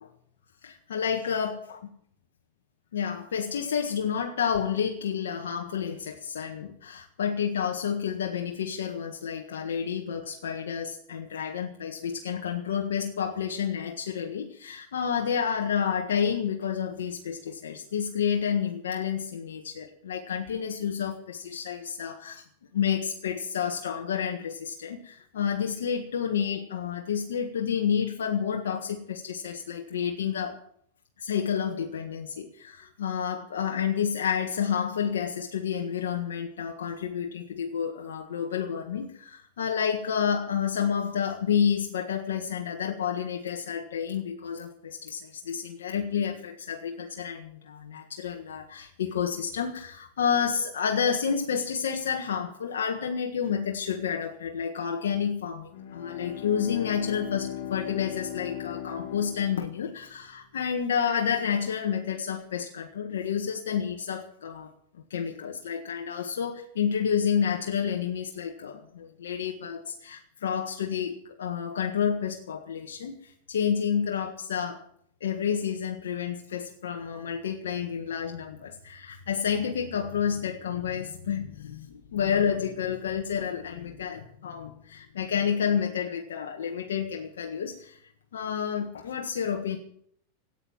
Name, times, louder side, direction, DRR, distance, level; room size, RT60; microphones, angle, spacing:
voice 1, 0.6-1.8 2.9-22.4 22.7-30.6 31.2-74.8 75.2-88.0 88.3-89.8, left 7 dB, 90° left, 2 dB, 1.6 m, -30 dB
Bowed string instrument, 55.7-60.3, left 10 dB, 65° left, 3.7 m, -38 dB
15.0 x 9.1 x 9.0 m, 0.67 s
hypercardioid pair, 125°, 0 cm